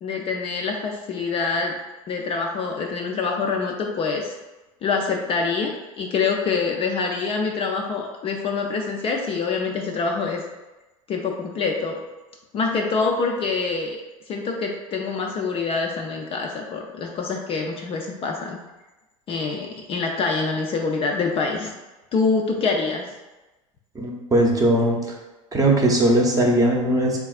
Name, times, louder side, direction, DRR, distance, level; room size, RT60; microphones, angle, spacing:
voice 1, 0.0-1.7 2.1-4.4 4.8-10.4 11.1-12.0 12.5-14.0 14.3-18.6 19.3-21.7 22.1-23.0 24.8-24.9, left 4 dB, 30° left, 1 dB, 0.4 m, -25 dB
voice 2, 23.9-25.0 25.5-27.2, right 1 dB, 20° right, -1 dB, 0.7 m, -19 dB
3.9 x 2.4 x 2.4 m, 1.1 s
hypercardioid pair, 85°, 18 cm